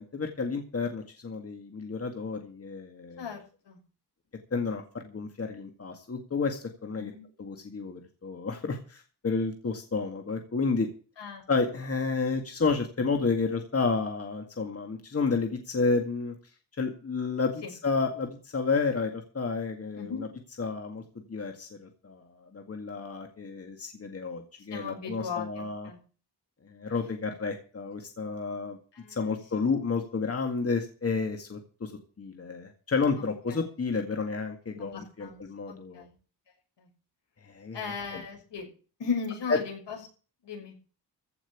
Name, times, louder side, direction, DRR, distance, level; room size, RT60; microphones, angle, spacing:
voice 1, 0.0-3.2 4.5-7.1 7.4-10.9 11.5-16.3 16.8-20.3 20.6-21.0 21.3-25.9 26.6-28.8 29.1-31.9 32.2-36.1 37.4-37.8 38.1-38.2 39.5-39.6, left 4 dB, 35° left, 4 dB, 2.1 m, -31 dB
voice 2, 3.2-3.8 7.0-7.2 11.2-11.4 17.6-17.7 20.0-20.2 24.7-26.0 28.9-29.4 33.2-33.6 34.8-36.1 36.8-36.9 37.7-38.7 39.0-40.0 40.4-40.8, left 6 dB, 80° left, 2 dB, 6.1 m, -37 dB
15.5 x 6.0 x 8.6 m, 0.37 s
wide cardioid pair, 130°, 42 cm